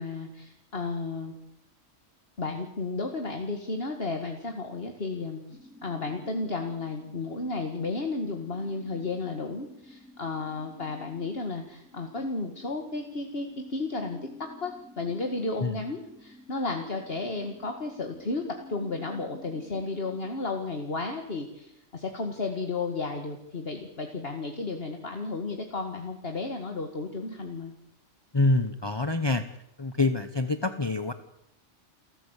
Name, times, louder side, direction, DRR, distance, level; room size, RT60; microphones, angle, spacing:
voice 1, 0.0-1.3 2.4-27.7, left 3 dB, 50° left, 4 dB, 2.2 m, -33 dB
sound 1, 5.5-20.5, left 3 dB, 5° right, 5.7 m, -51 dB
voice 2, 28.3-29.4 29.8-31.1, left 2 dB, 20° left, 10 dB, 1.0 m, -26 dB
29.0 x 14.0 x 8.3 m, 0.81 s
omnidirectional pair, 1.3 m